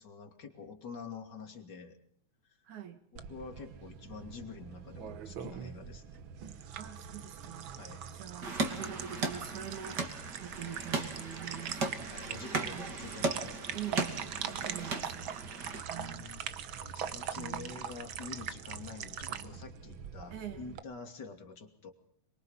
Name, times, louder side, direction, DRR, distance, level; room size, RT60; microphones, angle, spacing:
voice 1, 0.0-2.0 3.3-6.2 7.8-8.0 12.1-13.7 14.4-14.7 15.9-21.9, left 4 dB, 35° left, 4 dB, 3.1 m, -47 dB
voice 2, 2.7-3.0 6.8-7.7 8.1-12.1 12.6-13.0 13.7-14.2 14.6-15.4 15.8-16.2 17.4-17.8 20.3-20.8, right 9 dB, 80° right, 8 dB, 3.6 m, -44 dB
sound 1, 3.2-20.8, right 8 dB, 60° right, 1.4 m, -42 dB
sound 2, 8.4-15.8, right 3 dB, 35° right, 3.0 m, -37 dB
25.5 x 23.0 x 5.7 m, 0.65 s
omnidirectional pair, 3.4 m